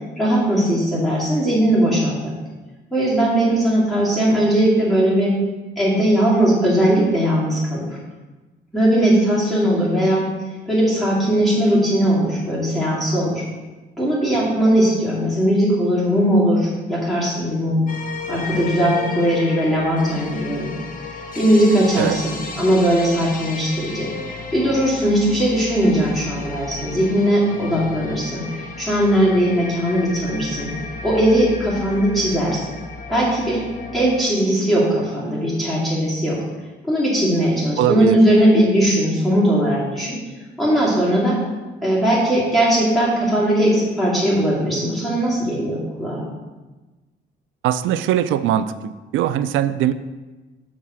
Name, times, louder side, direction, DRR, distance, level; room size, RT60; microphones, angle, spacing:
voice 1, 0.2-2.3 2.9-5.3 5.8-7.8 8.7-10.2 10.7-13.4 14.0-17.8 18.3-20.7 21.3-24.1 24.5-30.7 31.0-32.7 33.1-33.6 33.9-36.4 36.8-40.2 40.6-41.4 41.8-46.2, right 1 dB, ahead, -8 dB, 2.4 m, -19 dB
sound 1, 17.9-34.3, left 4 dB, 45° left, 0.9 m, -34 dB
voice 2, 37.8-38.2 47.6-49.9, right 11 dB, 85° right, 14 dB, 0.4 m, -21 dB
7.3 x 3.6 x 6.2 m, 1.2 s
cardioid pair, 90°, 20 cm